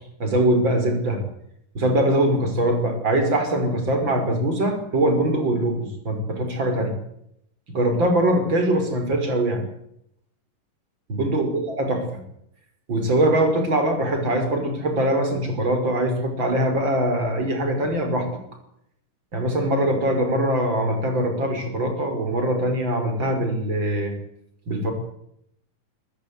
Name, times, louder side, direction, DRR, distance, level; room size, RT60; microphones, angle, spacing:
voice 1, 0.2-1.2 1.7-6.9 7.7-9.6 11.1-12.0 12.9-18.3 19.3-24.1 24.7-24.9, right 1 dB, 30° right, 5 dB, 6.3 m, -22 dB
23.0 x 20.0 x 8.5 m, 0.75 s
omnidirectional pair, 3.9 m